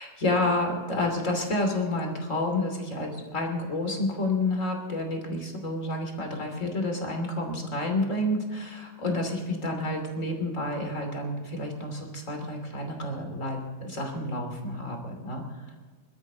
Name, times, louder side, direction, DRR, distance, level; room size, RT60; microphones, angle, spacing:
voice 1, 0.0-15.8, left 2 dB, 25° left, 3 dB, 2.7 m, -29 dB
24.0 x 12.5 x 3.9 m, 1.5 s
omnidirectional pair, 4.0 m